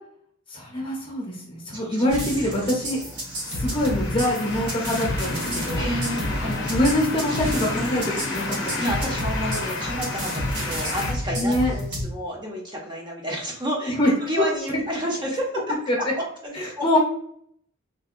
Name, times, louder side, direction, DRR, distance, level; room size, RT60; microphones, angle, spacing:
voice 1, 0.5-3.0 3.5-5.8 6.7-8.8 11.4-11.7 13.8-14.4 14.7-14.8 15.9-16.0 16.5-17.0, left 1 dB, 25° left, -2 dB, 0.8 m, -24 dB
sound 1, 2.1-12.0, equal, 55° right, 1.1 m, -30 dB
sound 2, 3.1-11.1, left 3 dB, 60° left, 0.6 m, -31 dB
voice 2, 3.4-3.8 5.7-6.8 8.3-8.4 8.8-13.9 14.2-15.7 16.1-16.8, equal, 20° right, -2 dB, 0.8 m, -30 dB
3.6 x 2.3 x 2.5 m, 0.67 s
head